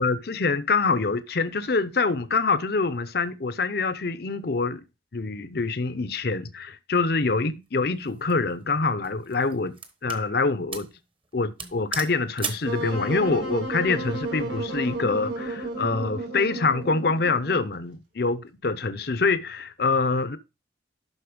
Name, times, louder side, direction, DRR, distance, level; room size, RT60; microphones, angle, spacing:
voice 1, 0.0-4.8 5.1-9.7 10.0-10.9 11.3-20.4, left 4 dB, 55° left, 0.7 m, -25 dB
sound 1, 8.0-8.3 9.0-10.3 10.7-11.0 11.2-11.3 11.6-12.7, right 5 dB, 30° right, 1.1 m, -35 dB
Wind instrument woodwind instrument, 12.6-17.7, right 2 dB, 70° right, 3.6 m, -32 dB
11.5 x 4.1 x 5.1 m
head